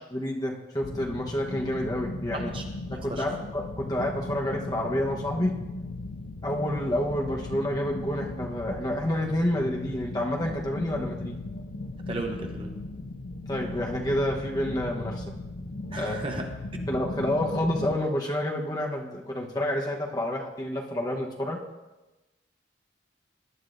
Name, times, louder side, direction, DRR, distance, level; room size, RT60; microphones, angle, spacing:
voice 1, 0.1-2.5 2.9-5.5 6.4-11.4 13.5-15.3 16.0-16.2 16.9-21.6, left 1 dB, 20° left, 0 dB, 1.1 m, -29 dB
sound 1, 0.8-18.0, left 2 dB, 75° left, 0.7 m, -37 dB
voice 2, 2.3-2.6 2.9-3.2 12.1-12.7 15.9-16.9, right 2 dB, 25° right, 3 dB, 0.9 m, -35 dB
19.0 x 10.5 x 2.6 m, 1.1 s
head